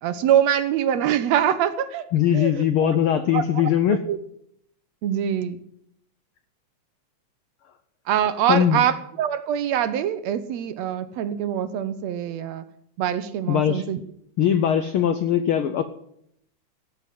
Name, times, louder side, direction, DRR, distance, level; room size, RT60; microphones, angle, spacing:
voice 1, 0.0-2.1 2.3-3.0 3.3-4.2 5.0-5.6 8.1-12.6 13.0-14.0, right 10 dB, 75° right, 12 dB, 1.9 m, -24 dB
voice 2, 2.1-4.0 8.5-8.8 13.5-13.8 14.4-15.8, left 9 dB, 85° left, 10 dB, 1.1 m, -20 dB
16.0 x 8.0 x 7.6 m, 0.72 s
omnidirectional pair, 3.3 m